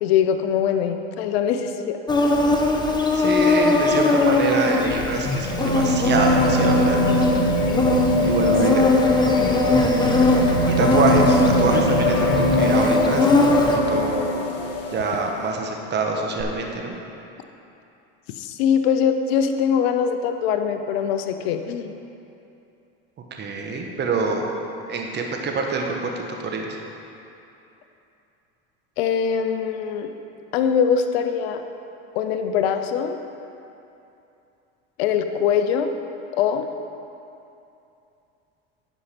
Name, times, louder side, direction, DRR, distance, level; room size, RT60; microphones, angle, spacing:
voice 1, 0.0-2.0 18.4-21.9 29.0-30.1 30.5-31.6 32.1-33.2 35.0-35.9 36.3-36.7, left 7 dB, 85° left, 7 dB, 0.7 m, -22 dB
Insect, 2.1-13.8, left 2 dB, 15° left, 0.9 m, -21 dB
voice 2, 3.1-7.3 8.2-8.8 9.3-10.1 10.7-14.2 14.9-17.0 23.4-24.4 24.9-26.7, right 4 dB, 35° right, 2 dB, 1.3 m, -25 dB
sound 1, 4.3-15.2 16.4-16.5, left 1 dB, 50° left, 1.4 m, -22 dB
10.0 x 5.4 x 5.9 m, 2.8 s
supercardioid pair, 100°, 30 cm